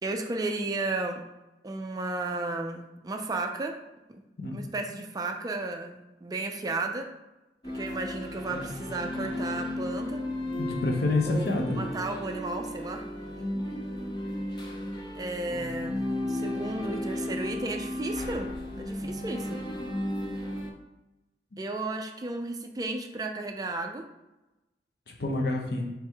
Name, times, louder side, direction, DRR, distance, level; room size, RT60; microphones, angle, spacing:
voice 1, 0.0-1.2 1.6-3.7 4.1-4.2 4.5-7.1 7.7-10.2 11.3-13.0 15.2-16.0 16.3-18.5 18.8-19.6 21.6-24.0, right 2 dB, 20° right, 4 dB, 0.3 m, -33 dB
sound 1, 7.6-20.7, left 1 dB, 25° left, 0.6 m, -34 dB
voice 2, 10.5-11.8 25.1-25.9, left 2 dB, 60° left, 1 dB, 0.8 m, -28 dB
4.5 x 3.3 x 3.4 m, 1.0 s
head